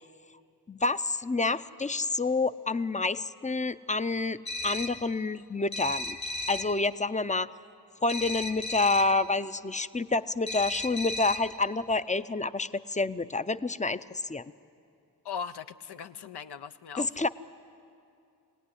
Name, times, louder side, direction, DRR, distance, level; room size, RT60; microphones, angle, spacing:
voice 1, 0.7-6.2 6.5-7.5 8.0-14.0 14.3-14.5 17.0-17.3, left 3 dB, 20° left, 13 dB, 0.5 m, -28 dB
sound 1, 4.4-5.1 5.7-6.8 8.1-9.2 10.5-11.6, left 2 dB, 45° left, 1.1 m, -35 dB
voice 2, 15.2-17.1, left 7 dB, 85° left, 10 dB, 0.7 m, -39 dB
25.0 x 18.0 x 9.9 m, 2.6 s
wide cardioid pair, 100°, 39 cm